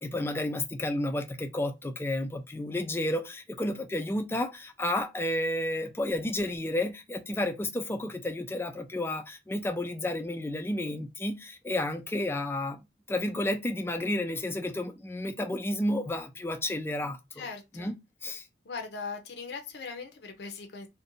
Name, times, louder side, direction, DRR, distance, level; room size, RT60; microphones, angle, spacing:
voice 1, 0.0-12.8 13.1-17.4 17.8-17.9 18.2-18.4, left 1 dB, 15° left, 0.3 m, -31 dB
voice 2, 17.3-17.9 18.6-20.9, left 4 dB, 65° left, 0.5 m, -40 dB
2.5 x 2.1 x 2.7 m
head